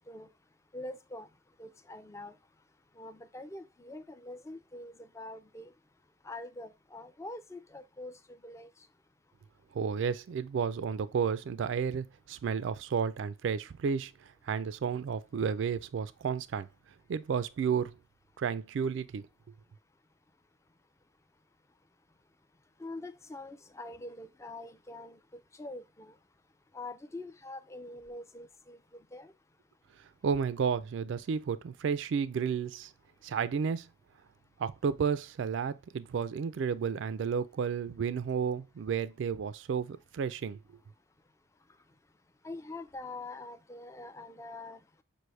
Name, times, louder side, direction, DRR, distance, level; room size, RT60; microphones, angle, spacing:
voice 1, 0.7-1.3 1.6-2.3 3.0-5.7 6.2-8.1 8.4-8.7 22.8-25.2 25.5-26.1 26.7-28.8 29.1-29.3 42.4-44.8, left 2 dB, 15° left, 0.3 m, -44 dB
voice 2, 9.7-16.7 17.1-17.9 18.4-19.3 30.2-32.9 33.2-33.9 34.6-40.6, right 6 dB, 65° right, 0.3 m, -32 dB
6.1 x 2.6 x 3.2 m
head